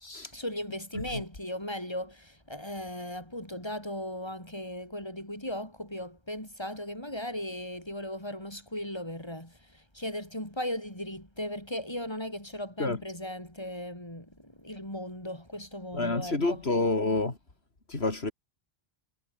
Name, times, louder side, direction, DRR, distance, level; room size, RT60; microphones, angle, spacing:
voice 1, 0.2-16.7, left 1 dB, 25° left, 7.6 m, -37 dB
voice 2, 15.9-17.3 17.9-18.3, left 2 dB, 75° left, 3.5 m, -28 dB
omnidirectional pair, 1.1 m